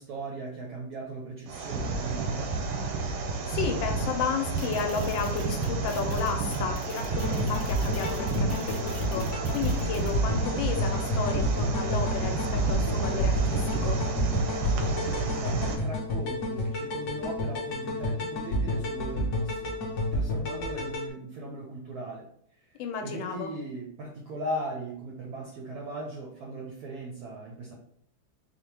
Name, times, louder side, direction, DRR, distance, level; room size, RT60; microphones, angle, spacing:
voice 1, 0.0-2.5 15.4-19.8 20.1-22.3 22.6-27.7, right 2 dB, 70° right, -1 dB, 0.9 m, -38 dB
sound 1, 1.5-15.8, right 3 dB, 90° right, 1.4 m, -31 dB
voice 2, 3.5-14.0 22.8-23.5, left 5 dB, 80° left, 4 dB, 1.3 m, -33 dB
sound 2, 4.6-10.1, left 1 dB, 20° left, 1.0 m, -45 dB
sound 3, 7.1-21.1, left 1 dB, 60° left, 0.9 m, -30 dB
4.1 x 2.1 x 3.2 m, 0.67 s
omnidirectional pair, 2.2 m